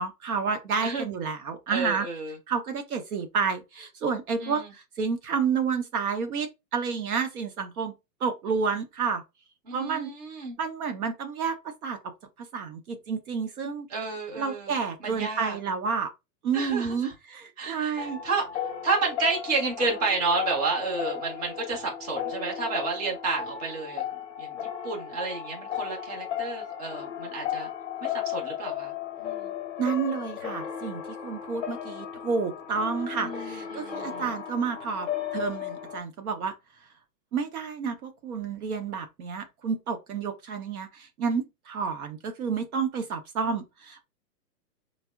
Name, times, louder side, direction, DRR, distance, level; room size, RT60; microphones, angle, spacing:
voice 1, 0.0-2.1 2.5-7.9 8.2-9.2 9.7-10.1 10.6-12.1 12.4-13.9 14.3-16.1 16.4-18.2 29.8-36.5 37.3-44.0, right 5 dB, 60° right, 0.6 m, -30 dB
voice 2, 1.7-2.3 4.4-4.7 9.7-10.6 13.9-15.6 16.5-17.1 17.6-18.4 18.8-24.0 24.4-24.6 24.8-27.7 28.0-28.9 29.2-29.5 33.2-34.3, right 4 dB, 25° right, 0.7 m, -31 dB
sound 1, 18.0-36.0, left 9 dB, 45° left, 0.6 m, -35 dB
3.5 x 2.0 x 2.2 m
hypercardioid pair, 160°, 50 cm